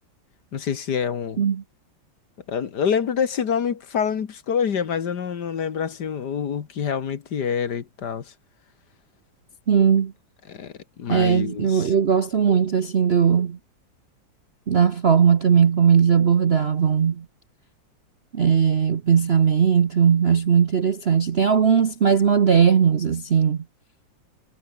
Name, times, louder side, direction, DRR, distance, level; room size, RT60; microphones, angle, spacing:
voice 1, 0.5-1.5 2.5-8.3 10.5-11.9, left 7 dB, 60° left, 2.0 m, -26 dB
voice 2, 9.7-10.1 11.1-13.6 14.7-17.2 18.3-23.6, right 7 dB, 45° right, 0.8 m, -18 dB
omnidirectional pair, 2.1 m